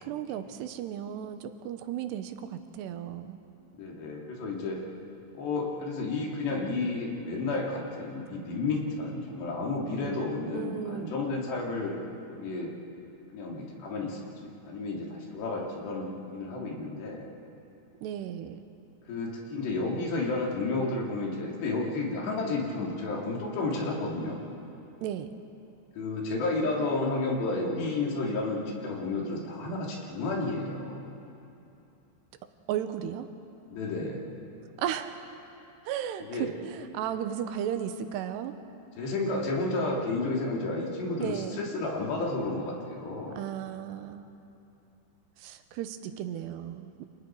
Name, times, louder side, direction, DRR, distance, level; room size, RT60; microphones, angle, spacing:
voice 1, 0.0-3.4 10.5-11.2 18.0-18.6 25.0-25.3 32.7-33.3 34.8-35.1 35.8-38.5 41.2-41.6 43.4-44.3 45.4-47.1, right 10 dB, 85° right, 9 dB, 3.1 m, -35 dB
voice 2, 3.7-4.8 5.3-12.0 12.3-12.7 13.3-17.2 19.1-24.4 25.9-31.0 33.7-34.2 36.3-36.5 39.0-43.4, left 3 dB, 85° left, -2 dB, 5.1 m, -31 dB
29.0 x 27.5 x 4.7 m, 2.8 s
omnidirectional pair, 4.8 m